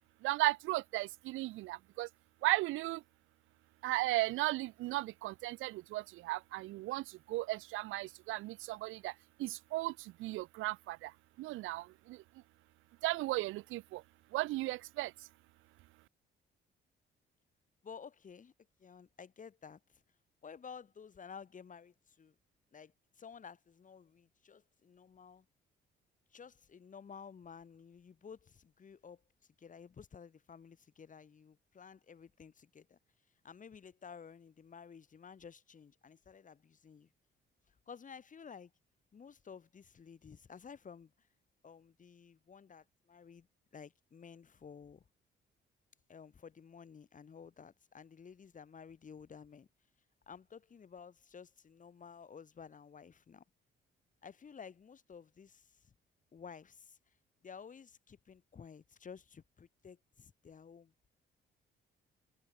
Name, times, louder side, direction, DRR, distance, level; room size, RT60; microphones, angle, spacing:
voice 1, 0.2-2.1 2.4-3.0 3.8-9.1 9.4-11.1 11.4-12.2 13.0-14.0 14.3-15.1, right 18 dB, 85° right, 0.4 m, -36 dB
voice 2, 17.8-18.5 18.8-20.0 20.4-22.4 22.7-25.5 26.3-29.2 29.6-33.0 33.4-37.1 37.7-38.7 39.1-41.3 41.6-43.5 43.7-45.0 46.1-49.7 50.3-53.4 54.2-55.9 56.3-57.0 57.4-60.9, left 6 dB, 40° left, 2.1 m, -53 dB
cardioid pair, 90°, 20 cm